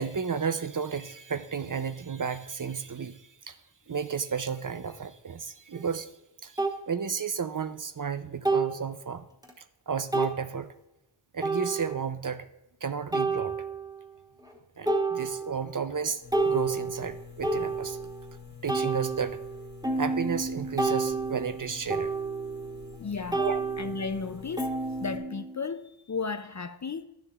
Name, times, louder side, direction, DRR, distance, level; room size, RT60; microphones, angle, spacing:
voice 1, 0.0-3.6 3.9-6.1 6.4-9.3 9.6-10.7 11.3-12.5 12.8-13.6 14.8-18.1 18.6-19.4 20.0-22.1 23.4-23.6, right 6 dB, 40° right, 0.5 m, -33 dB
sound 1, 5.7-5.8 6.6-6.8 8.4-8.9 9.4-9.5 10.1-10.4 11.4-12.1 13.1-14.0 14.4-14.6 14.9-15.7 16.1-18.2 18.7-23.0 23.3-25.6, right 3 dB, 10° right, 1.2 m, -30 dB
sound 2, 16.2-25.2, left 7 dB, 20° left, 1.2 m, -47 dB
voice 2, 23.0-23.5 23.8-24.7 25.0-27.0, left 5 dB, 40° left, 0.4 m, -34 dB
11.5 x 6.9 x 2.4 m
wide cardioid pair, 50°, 49 cm